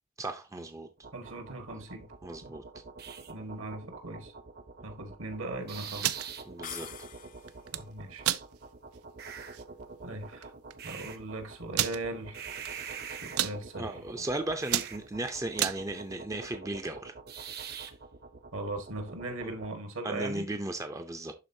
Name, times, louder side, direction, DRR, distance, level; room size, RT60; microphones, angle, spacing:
voice 1, 0.2-0.9 2.2-2.6 6.5-6.9 12.7-13.0 13.8-17.1 20.0-21.3, right 2 dB, 15° right, 0.5 m, -36 dB
sound 1, 1.0-19.8, right 5 dB, 45° right, 0.9 m, -45 dB
voice 2, 1.1-2.1 3.3-4.3 4.8-6.1 7.7-8.2 10.0-10.5 10.8-12.5 13.1-14.3 18.5-20.5, right 2 dB, 65° right, 1.6 m, -39 dB
sound 2, 5.9-6.3 7.5-7.8 8.2-8.4 8.9-9.0 9.4-9.6 10.4-10.5 10.7-10.8 11.7-12.0 12.6-12.9 13.2-13.6 14.1-14.3 14.6-15.8, right 13 dB, 90° right, 0.5 m, -30 dB
sound 3, 6.6-7.7, left 10 dB, 35° left, 0.5 m, -44 dB
11.5 x 3.9 x 2.7 m
head